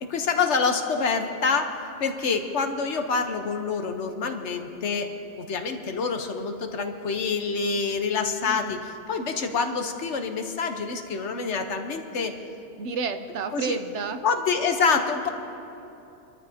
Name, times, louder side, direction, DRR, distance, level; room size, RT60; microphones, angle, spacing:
voice 1, 0.0-1.7 2.0-5.1 5.4-12.3 13.5-13.8 14.2-15.3, left 5 dB, 75° left, 6 dB, 1.3 m, -26 dB
voice 2, 8.5-8.8 12.8-14.2, right 5 dB, 75° right, 9 dB, 1.0 m, -31 dB
26.5 x 13.5 x 2.8 m, 2.9 s
omnidirectional pair, 1.2 m